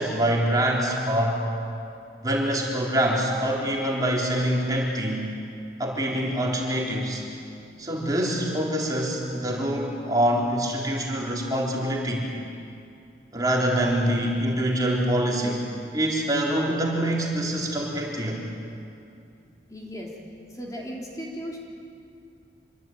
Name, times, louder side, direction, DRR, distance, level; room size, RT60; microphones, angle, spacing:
voice 1, 0.0-1.4 2.2-5.3 5.8-7.2 7.8-12.3 13.3-15.6 15.9-18.4, right 1 dB, 20° right, -2 dB, 3.9 m, -25 dB
voice 2, 19.7-20.1 20.5-21.6, equal, 20° left, -2 dB, 3.4 m, -36 dB
26.5 x 23.5 x 9.0 m, 2.5 s
head